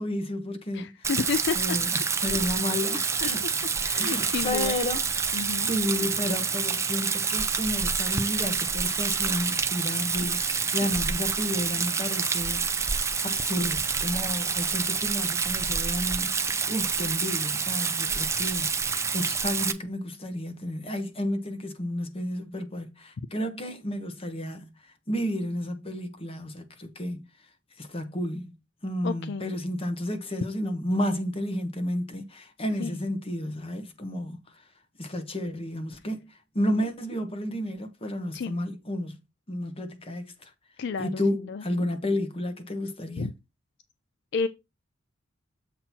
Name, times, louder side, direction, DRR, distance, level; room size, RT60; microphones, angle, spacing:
voice 1, 0.0-1.1 1.5-3.4 4.0-5.0 5.4-12.6 13.2-27.3 27.8-28.5 28.8-34.4 35.0-39.2 39.5-40.5 41.0-43.3, left 1 dB, 30° left, 1.1 m, -31 dB
voice 2, 0.7-1.8 3.2-3.3 3.8-4.8 5.3-5.7 10.2-11.0 29.0-29.6 32.8-32.9 38.3-38.6 40.8-41.2 41.5-41.6 43.2-43.3 44.3-44.5, left 5 dB, 60° left, 0.4 m, -31 dB
Rain, 1.0-19.7, right 5 dB, 15° right, 0.4 m, -28 dB
7.4 x 2.9 x 5.9 m
head